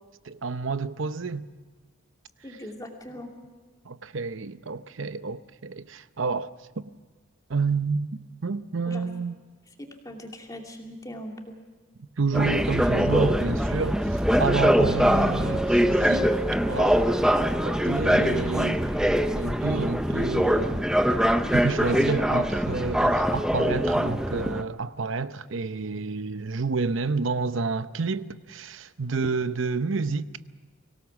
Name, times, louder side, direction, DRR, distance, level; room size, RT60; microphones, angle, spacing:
voice 1, 0.2-1.5 2.5-2.6 3.8-6.5 6.8-6.9 7.5-8.1 8.4-9.4 12.2-16.3 16.7-17.0 17.6-18.9 19.3-20.9 21.5-30.3, right 4 dB, 70° right, 0.8 m, -29 dB
voice 2, 2.4-3.3 8.8-9.1 9.8-11.5 21.9-22.4, equal, 15° left, 2.7 m, -38 dB
sound 1, 12.3-24.6, equal, 5° right, 0.7 m, -23 dB
24.5 x 18.0 x 7.1 m
head